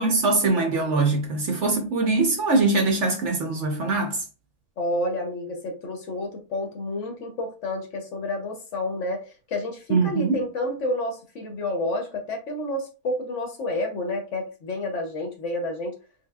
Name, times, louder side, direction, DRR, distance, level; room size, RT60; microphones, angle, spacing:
voice 1, 0.0-4.2 9.9-10.4, right 3 dB, 60° right, 0.8 m, -22 dB
voice 2, 4.8-15.9, left 1 dB, 60° left, 0.9 m, -30 dB
3.7 x 3.3 x 2.2 m
omnidirectional pair, 1.6 m